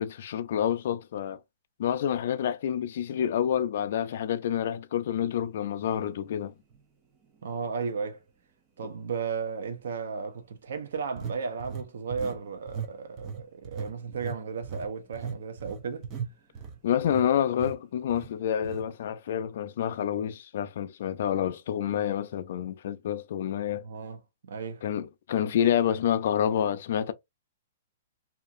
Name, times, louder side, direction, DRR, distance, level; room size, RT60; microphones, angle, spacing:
voice 1, 0.0-1.4 1.8-6.5 16.8-23.8 24.8-27.1, left 9 dB, 50° left, 0.3 m, -28 dB
sound 1, 6.7-6.8 7.4-7.6 11.2-12.4 12.7-12.9 13.2-17.3 17.6-17.8 18.1-18.3 18.6-18.8, right 6 dB, 20° right, 0.4 m, -38 dB
voice 2, 7.4-8.2 8.8-16.1 23.8-24.2 24.5-24.8, right 5 dB, 65° right, 0.6 m, -34 dB
2.8 x 2.4 x 2.4 m
hypercardioid pair, 175°, 0 cm